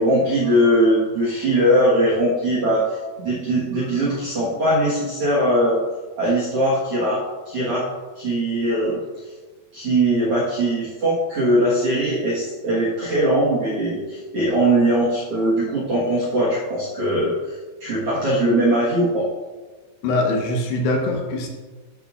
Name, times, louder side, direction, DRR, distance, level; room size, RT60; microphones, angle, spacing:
voice 1, 0.0-2.8 3.2-5.8 6.2-7.2 7.5-7.8 8.2-9.0 9.7-17.3 17.8-19.3, right 1 dB, 55° right, -6 dB, 1.7 m, -20 dB
voice 2, 20.0-21.5, left 2 dB, 80° left, 1 dB, 3.1 m, -22 dB
12.0 x 6.7 x 2.5 m, 1.3 s
omnidirectional pair, 4.7 m